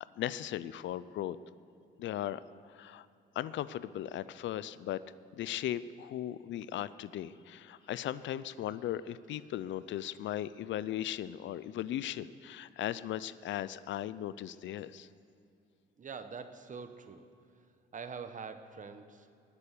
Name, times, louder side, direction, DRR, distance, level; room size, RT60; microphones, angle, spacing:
voice 1, 0.2-1.4 2.0-2.4 2.7-3.0 3.4-5.0 5.4-15.1, left 12 dB, 70° left, 16 dB, 0.5 m, -37 dB
voice 2, 16.0-17.3 17.5-19.4, right 5 dB, 40° right, 9 dB, 1.0 m, -45 dB
20.0 x 6.9 x 6.7 m, 2.5 s
cardioid pair, 90°, 20 cm